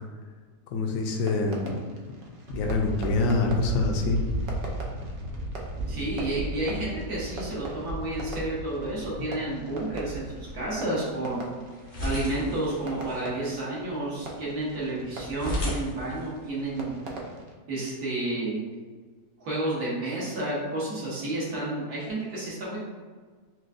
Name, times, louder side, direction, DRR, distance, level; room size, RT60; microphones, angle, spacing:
voice 1, 0.7-1.8 2.5-4.2, left 3 dB, 70° left, 2 dB, 0.9 m, -25 dB
Fireworks, 1.0-17.6, right 2 dB, 85° right, 0.4 m, -43 dB
sound 1, 2.5-10.8, right 2 dB, 45° right, 0.9 m, -35 dB
voice 2, 5.9-10.3 10.5-11.6 12.0-17.0 17.7-18.6 19.4-22.8, right 2 dB, 70° right, -7 dB, 1.7 m, -31 dB
sound 2, 9.8-16.9, left 1 dB, 50° left, 0.6 m, -37 dB
6.1 x 2.2 x 2.5 m, 1.5 s
omnidirectional pair, 1.7 m